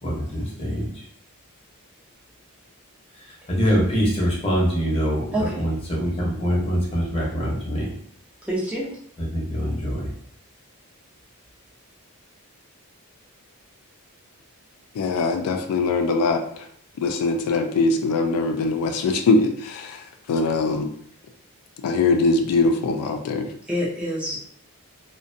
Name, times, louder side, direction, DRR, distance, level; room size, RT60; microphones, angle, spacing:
voice 1, 0.0-1.0 3.5-7.9 9.2-10.1, equal, 25° left, -4 dB, 0.7 m, -24 dB
voice 2, 8.5-8.9 23.7-24.5, equal, 5° right, -6 dB, 0.5 m, -26 dB
voice 3, 14.9-16.7 17.0-20.9 21.8-23.5, left 3 dB, 85° left, 6 dB, 0.3 m, -22 dB
2.4 x 2.1 x 2.6 m, 0.65 s
head